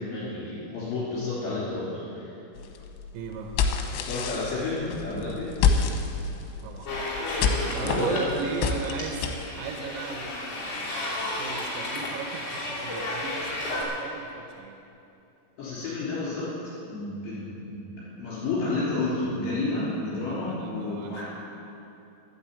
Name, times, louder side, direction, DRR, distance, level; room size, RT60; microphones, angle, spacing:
voice 1, 0.0-2.2 4.0-5.7 7.8-8.2 15.6-16.5 16.9-21.3, left 2 dB, 60° left, -9 dB, 5.5 m, -31 dB
sound 1, 2.6-9.5, left 5 dB, 85° left, 3.4 m, -29 dB
voice 2, 3.1-3.6 6.6-7.0 7.7-14.8 20.2-21.2, right 5 dB, 85° right, 2 dB, 3.6 m, -37 dB
sound 2, 6.9-13.8, left 1 dB, 30° left, 2.9 m, -33 dB
12.0 x 9.9 x 8.3 m, 2.7 s
omnidirectional pair, 5.8 m